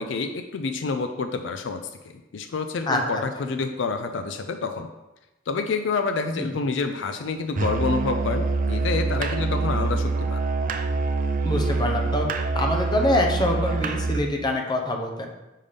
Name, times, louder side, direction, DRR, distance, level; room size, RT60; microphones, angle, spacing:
voice 1, 0.0-4.9 5.5-10.4, left 4 dB, 65° left, 7 dB, 0.4 m, -28 dB
Musical instrument, 7.6-14.3, right 3 dB, 45° right, 0.4 m, -25 dB
voice 2, 11.4-12.3 12.5-15.3, left 1 dB, 20° left, 2 dB, 0.6 m, -25 dB
5.6 x 5.2 x 3.4 m, 1.0 s
head